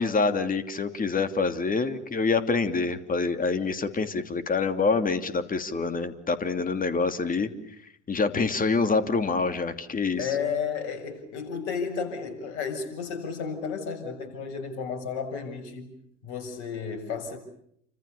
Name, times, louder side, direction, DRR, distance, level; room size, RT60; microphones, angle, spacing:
voice 1, 0.0-7.5 8.1-10.4, left 4 dB, 25° left, 10 dB, 2.9 m, -26 dB
voice 2, 10.2-15.9 16.2-17.4, left 6 dB, 55° left, 7 dB, 7.2 m, -32 dB
30.0 x 26.0 x 6.9 m, 0.72 s
figure-of-eight pair, 70°, 35 cm